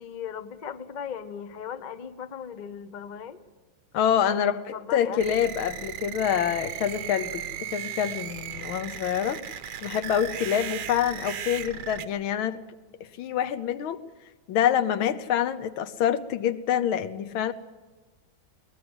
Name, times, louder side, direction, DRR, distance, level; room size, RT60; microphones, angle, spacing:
voice 1, 0.0-3.4 4.3-5.4, left 8 dB, 50° left, 11 dB, 0.5 m, -38 dB
voice 2, 3.9-9.4 9.8-12.6 13.0-14.0 14.5-17.5, left 9 dB, 80° left, 11 dB, 1.7 m, -26 dB
sound 1, 5.2-12.1, right 9 dB, 80° right, 1.8 m, -36 dB
22.5 x 18.5 x 7.9 m, 1.3 s
omnidirectional pair, 2.2 m